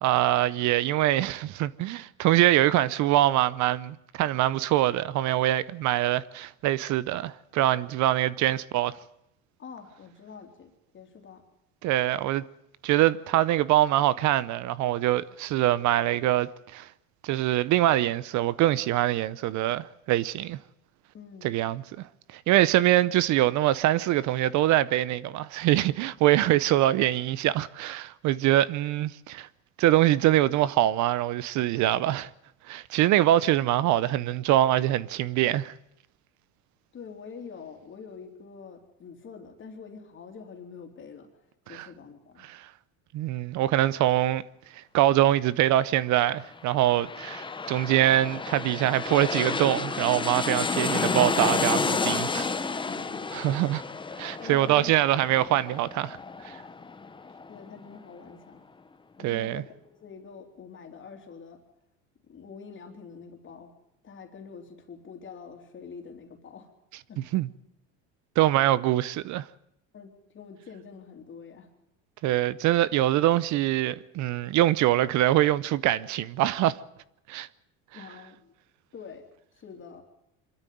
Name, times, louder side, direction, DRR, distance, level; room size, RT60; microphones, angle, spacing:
voice 1, 0.0-8.9 11.8-12.4 12.8-16.9 17.2-20.6 21.4-29.5 29.8-32.3 32.7-35.7 41.7-41.9 42.5-42.7 43.1-44.4 44.7-52.5 53.3-53.8 54.2-56.2 56.4-56.6 59.2-59.6 67.3-67.5 68.4-69.5 72.2-76.8 77.3-77.5, right 14 dB, 55° right, 0.7 m, -24 dB
voice 2, 9.6-11.5 21.1-21.5 36.9-41.3 41.6-42.5 52.7-53.3 54.4-55.2 57.5-58.7 59.2-59.7 60.0-61.6 62.2-63.7 64.0-66.7 67.1-67.2 69.9-71.7 77.9-78.5 78.9-79.3 79.5-80.0, left 5 dB, 35° left, 3.3 m, -45 dB
sound 1, 46.6-57.9 58.3-58.4, left 4 dB, 15° left, 1.1 m, -31 dB
24.0 x 13.0 x 9.3 m
supercardioid pair, 115°, 35 cm